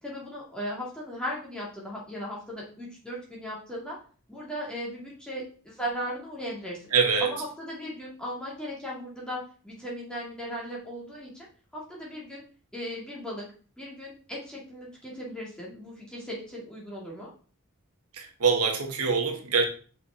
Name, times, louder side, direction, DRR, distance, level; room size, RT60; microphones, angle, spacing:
voice 1, 0.0-4.0 4.3-6.9 7.2-11.5 11.7-12.4 12.7-13.5 13.8-17.3, equal, 5° left, -5 dB, 2.1 m, -37 dB
voice 2, 6.9-7.3 18.1-19.6, right 5 dB, 90° right, 3 dB, 1.3 m, -24 dB
5.6 x 4.8 x 4.3 m, 0.40 s
head